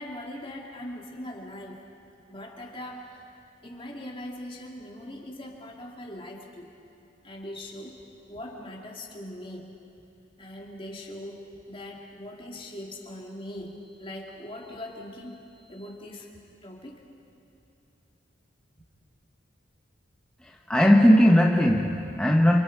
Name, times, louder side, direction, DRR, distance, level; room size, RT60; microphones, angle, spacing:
voice 1, 0.0-1.9 2.3-3.3 3.6-6.7 7.2-8.0 8.3-9.8 10.4-16.3 16.6-17.1, left 1 dB, 25° left, 0 dB, 2.4 m, -41 dB
voice 2, 20.4-22.6, equal, 5° left, -1 dB, 0.8 m, -19 dB
28.5 x 26.0 x 4.6 m, 2.7 s
head